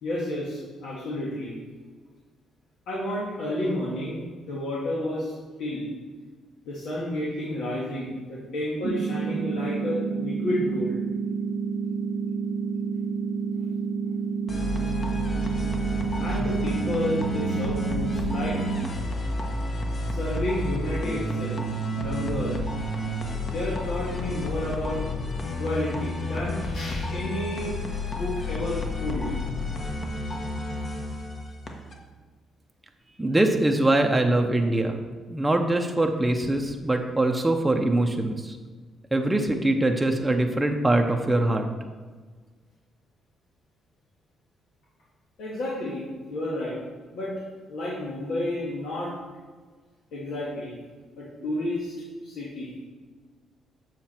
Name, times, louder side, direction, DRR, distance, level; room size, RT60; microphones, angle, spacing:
voice 1, 0.0-1.5 2.9-5.3 5.6-5.9 6.7-11.0 16.2-18.6 20.1-21.6 21.9-22.6 23.4-25.0 25.4-27.8 28.1-29.3 45.4-46.8 47.1-47.3 47.7-49.1 50.1-50.7 51.2-51.9 52.2-52.7, left 1 dB, 80° left, -6 dB, 1.7 m, -31 dB
sound 1, 8.8-18.8, right 5 dB, 50° right, 0.3 m, -29 dB
sound 2, 14.5-31.9, left 1 dB, 45° left, 1.3 m, -31 dB
voice 2, 33.2-35.0 35.3-38.6 39.1-41.7, right 1 dB, 10° right, 3 dB, 0.7 m, -23 dB
7.6 x 5.8 x 4.4 m, 1.4 s
cardioid pair, 90°, 0 cm